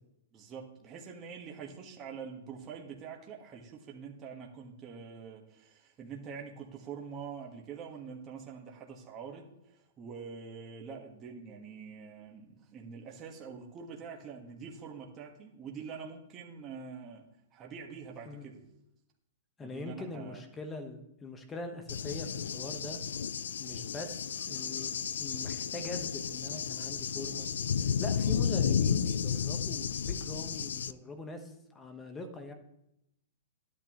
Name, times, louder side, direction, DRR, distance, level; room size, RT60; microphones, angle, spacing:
voice 1, 0.3-17.3 17.5-18.6 19.6-20.4, right 6 dB, 25° right, 0 dB, 1.5 m, -45 dB
voice 2, 19.6-23.0 23.6-27.5 27.8-32.5, left 2 dB, 15° left, 7 dB, 1.2 m, -42 dB
Cricket / Thunder, 21.9-30.9, left 7 dB, 85° left, 0.3 m, -32 dB
12.0 x 8.7 x 3.1 m, 0.85 s
hypercardioid pair, 140°, 0 cm